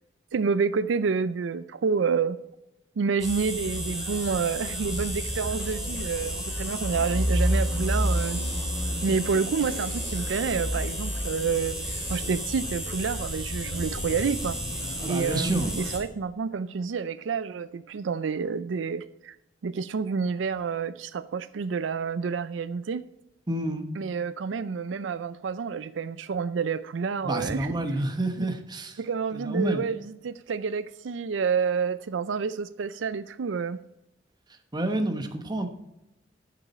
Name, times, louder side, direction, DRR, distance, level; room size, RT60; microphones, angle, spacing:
voice 1, 0.3-2.4 3.0-8.4 9.0-14.6 15.0-19.4 19.6-23.0 24.0-27.7 28.4-28.5 29.0-33.8, right 5 dB, 85° right, 0.4 m, -29 dB
sound 1, 3.2-16.0, equal, ahead, 2.9 m, -30 dB
voice 2, 15.0-15.7 23.5-23.9 27.2-29.0 29.3-29.8 34.7-35.7, right 1 dB, 25° right, 1.0 m, -28 dB
12.0 x 6.9 x 4.2 m
head